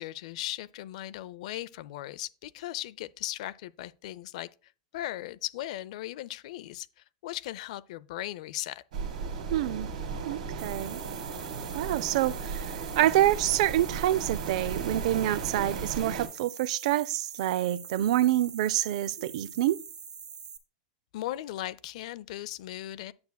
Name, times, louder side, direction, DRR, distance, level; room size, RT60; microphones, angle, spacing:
voice 1, 0.0-4.5 4.9-6.9 7.2-8.8 21.1-23.1, left 14 dB, 60° left, 0.5 m, -37 dB
sound 1, 8.9-16.3, right 5 dB, 80° right, 2.0 m, -36 dB
voice 2, 9.5-9.9 10.2-11.0 11.7-19.8, right 13 dB, 60° right, 0.5 m, -27 dB
sound 2, 10.6-20.6, right 6 dB, 20° right, 1.1 m, -45 dB
9.5 x 7.9 x 2.3 m
supercardioid pair, 145°, 4 cm